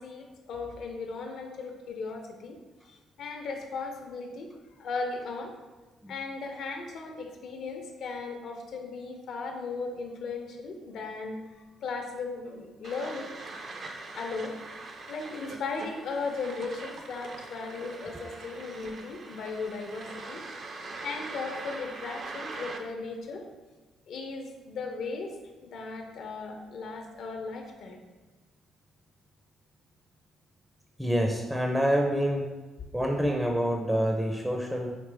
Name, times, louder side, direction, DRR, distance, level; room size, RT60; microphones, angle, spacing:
voice 1, 0.0-2.6 2.9-5.5 6.1-11.4 11.8-13.5 14.1-14.5 15.1-20.5 20.7-23.5 24.1-25.3 25.6-28.0, left 4 dB, 70° left, 3 dB, 0.7 m, -37 dB
sound 1, 12.8-22.8, right 3 dB, 55° right, 0.6 m, -42 dB
voice 2, 31.0-32.5 32.9-34.9, equal, 5° right, 1 dB, 0.5 m, -27 dB
5.0 x 3.0 x 3.4 m, 1.3 s
cardioid pair, 80°, 0 cm